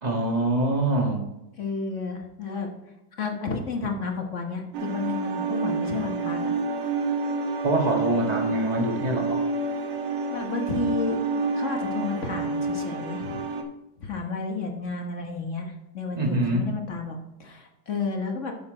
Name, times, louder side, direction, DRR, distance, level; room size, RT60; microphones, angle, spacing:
voice 1, 0.0-1.2 7.6-9.5 16.2-16.7, right 1 dB, 20° right, 1 dB, 1.6 m, -24 dB
voice 2, 1.6-2.7 3.2-6.5 10.3-13.4 14.0-18.5, left 4 dB, 45° left, 2 dB, 1.4 m, -32 dB
sound 1, 4.7-13.6, right 3 dB, 65° right, 1.7 m, -28 dB
9.7 x 7.0 x 3.9 m, 0.94 s
omnidirectional pair, 2.2 m